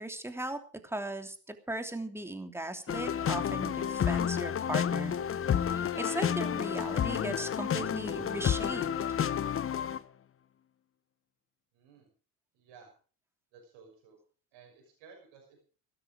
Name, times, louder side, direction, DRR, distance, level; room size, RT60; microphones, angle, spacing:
voice 1, 0.0-5.2 5.6-8.9, right 1 dB, 5° right, 6 dB, 3.0 m, -38 dB
sound 1, 2.9-10.0, left 8 dB, 30° left, 0.8 m, -30 dB
voice 2, 11.7-12.1 12.5-12.9 13.5-14.2 14.5-15.6, right 5 dB, 70° right, 1 dB, 6.0 m, -56 dB
17.0 x 13.0 x 5.1 m, 0.40 s
hypercardioid pair, 65°, 46 cm